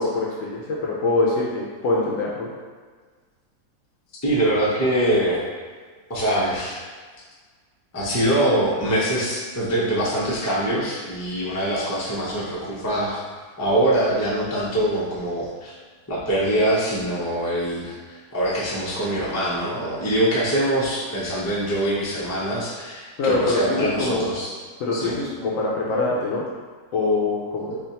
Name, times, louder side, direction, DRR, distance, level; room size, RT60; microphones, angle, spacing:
voice 1, 0.0-2.5 23.2-24.2 24.8-26.4 26.9-27.7, left 2 dB, 65° left, -4 dB, 0.8 m, -24 dB
voice 2, 4.2-5.5 6.1-6.8 7.9-13.2 13.6-15.7 16.1-24.6 24.9-25.2 27.7-27.8, right 1 dB, 25° left, -7 dB, 0.3 m, -23 dB
3.4 x 2.4 x 4.1 m, 1.5 s
omnidirectional pair, 1.8 m